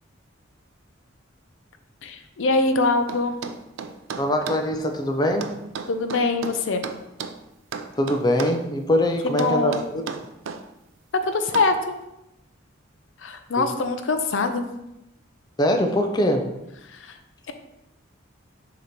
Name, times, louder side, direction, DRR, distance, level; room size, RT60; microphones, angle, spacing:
voice 1, 2.0-3.4 5.9-6.8 9.2-9.8 11.2-11.9 13.2-14.7 16.9-17.2, left 3 dB, 75° left, 7 dB, 0.6 m, -23 dB
sound 1, 3.1-4.7 5.4-7.4 7.7-8.6 9.4-10.6 11.5-11.8, right 5 dB, 80° right, 0.4 m, -34 dB
voice 2, 4.2-5.5 8.0-10.0 13.6-13.7 15.6-16.5, left 1 dB, 20° left, 4 dB, 0.5 m, -22 dB
6.6 x 2.9 x 5.1 m, 0.90 s
head